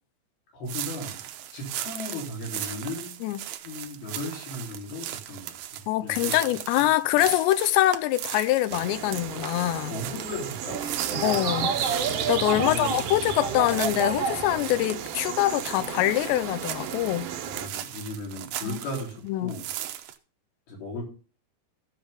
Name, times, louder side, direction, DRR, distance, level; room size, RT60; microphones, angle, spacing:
voice 1, 0.5-1.2 1.5-3.2 3.6-6.4 9.9-10.9 12.4-13.1 17.4-19.7 20.7-21.1, left 1 dB, 60° left, 5.5 m, -36 dB
sound 1, 0.7-19.2 19.5-20.1, right 12 dB, 90° right, 2.0 m, -38 dB
voice 2, 5.9-10.0 11.2-11.8 12.3-17.3 18.6-18.8 19.2-19.6, left 15 dB, 85° left, 2.8 m, -24 dB
sound 2, 8.7-17.7, right 9 dB, 70° right, 2.6 m, -34 dB
sound 3, 10.7-14.8, right 5 dB, 50° right, 2.1 m, -30 dB
15.5 x 6.9 x 3.6 m
omnidirectional pair, 5.1 m